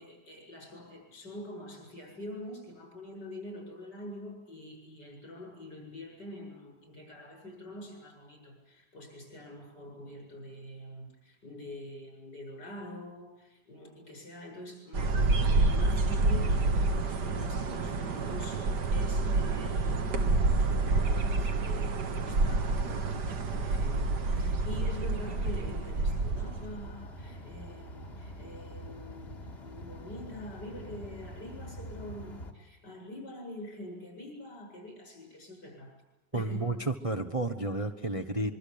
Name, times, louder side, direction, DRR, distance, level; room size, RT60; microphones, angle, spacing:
voice 1, 0.0-36.0 36.3-36.7 38.4-38.5, left 1 dB, 70° left, 2 dB, 8.6 m, -45 dB
sound 1, 14.9-26.9, right 3 dB, 75° right, 2.2 m, -28 dB
sound 2, 22.5-32.5, equal, 35° left, 2.4 m, -45 dB
voice 2, 36.3-38.5, right 2 dB, 25° right, 7 dB, 1.0 m, -31 dB
25.5 x 24.0 x 8.7 m, 0.94 s
omnidirectional pair, 1.9 m